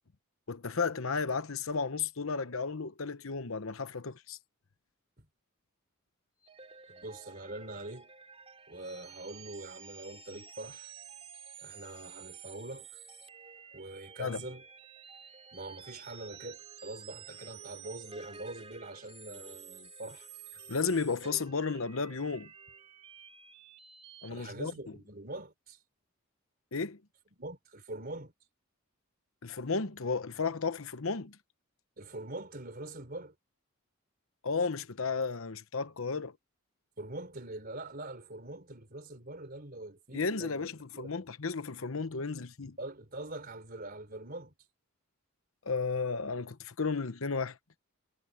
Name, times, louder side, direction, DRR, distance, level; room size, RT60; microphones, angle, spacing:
voice 1, 0.5-4.4 14.2-14.4 20.7-22.5 24.2-24.7 26.7-27.0 29.4-31.4 34.4-36.3 40.1-42.8 45.7-47.6, left 4 dB, 70° left, 1.0 m, -33 dB
sound 1, 6.4-24.3, right 6 dB, 25° right, 3.3 m, -51 dB
voice 2, 6.9-8.1 8.7-10.9 11.6-12.9 13.7-14.7 15.5-20.3 24.3-25.8 27.4-28.3 32.0-33.3 37.0-41.2 42.8-44.5, right 2 dB, 45° right, 3.9 m, -44 dB
head